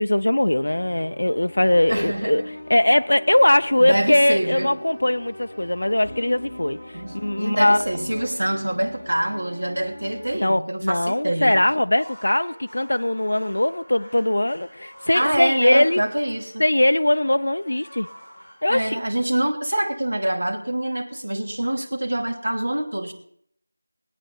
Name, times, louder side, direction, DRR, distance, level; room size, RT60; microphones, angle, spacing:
voice 1, 0.0-2.4 2.7-7.9 10.3-16.0 16.6-18.1 18.6-19.0, left 1 dB, 70° left, 0.4 m, -20 dB
sound 1, 0.6-10.3, left 1 dB, 15° left, 4.4 m, -39 dB
voice 2, 1.9-2.5 3.8-4.8 6.9-11.6 15.1-16.6 18.7-23.1, right 1 dB, 80° right, 2.8 m, -25 dB
sound 2, 11.8-19.9, equal, 10° right, 6.2 m, -46 dB
21.0 x 9.1 x 4.1 m
figure-of-eight pair, 180°, 0 cm